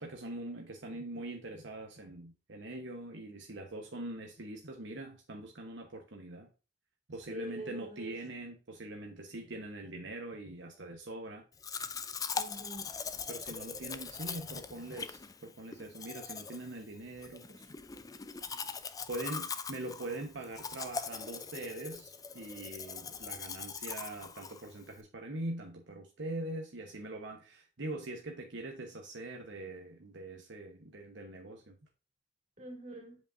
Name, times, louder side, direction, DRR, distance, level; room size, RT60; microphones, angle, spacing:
voice 1, 0.0-6.5 7.1-11.4 13.3-17.7 19.1-31.8, right 1 dB, 70° right, 1.0 m, -43 dB
voice 2, 7.3-8.1 12.3-12.9 32.6-33.2, right 1 dB, 40° right, 2.4 m, -44 dB
Domestic sounds home sounds, 11.6-25.0, left 5 dB, 20° left, 0.4 m, -41 dB
7.7 x 5.3 x 2.6 m
head